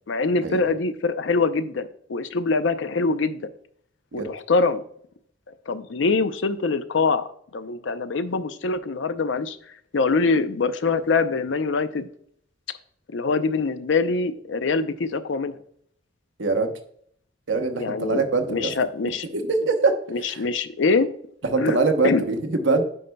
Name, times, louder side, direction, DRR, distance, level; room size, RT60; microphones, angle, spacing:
voice 1, 0.1-3.4 4.1-4.8 5.7-7.3 7.5-9.6 9.9-12.1 13.1-15.5 17.8-18.2 18.5-19.3 20.1-21.1 21.6-21.8 22.0-22.2, left 4 dB, 70° left, 12 dB, 0.5 m, -24 dB
voice 2, 16.4-16.7 17.5-18.7 19.3-20.0 20.3-20.4 21.5-22.8, right 3 dB, 70° right, 5 dB, 0.9 m, -23 dB
9.0 x 5.3 x 2.2 m, 0.64 s
head